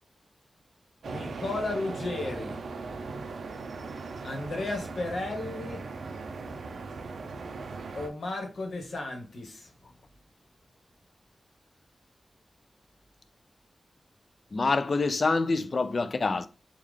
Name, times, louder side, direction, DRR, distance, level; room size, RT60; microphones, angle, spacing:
voice 1, 1.0-2.6 4.2-5.8 7.9-9.7, left 2 dB, 80° left, 1.2 m, -34 dB
sound 1, 1.0-8.1, right 4 dB, 90° right, 0.4 m, -38 dB
voice 2, 14.5-16.5, left 3 dB, 50° left, 0.3 m, -26 dB
3.6 x 2.3 x 3.2 m
wide cardioid pair, 80°, 0 cm